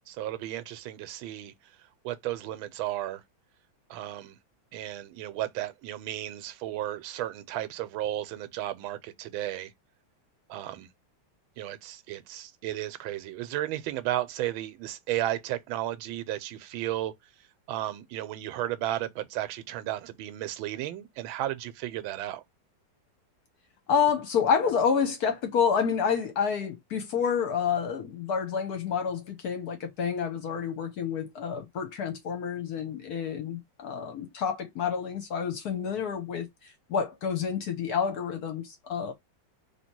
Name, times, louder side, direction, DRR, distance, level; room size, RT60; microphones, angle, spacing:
voice 1, 0.1-1.5 2.0-3.2 3.9-4.4 4.7-9.7 10.5-10.9 11.6-17.1 17.7-22.4, right 13 dB, 85° right, 1.4 m, -34 dB
voice 2, 23.9-39.1, left 7 dB, 65° left, 1.1 m, -29 dB
3.2 x 2.8 x 4.4 m
omnidirectional pair, 2.2 m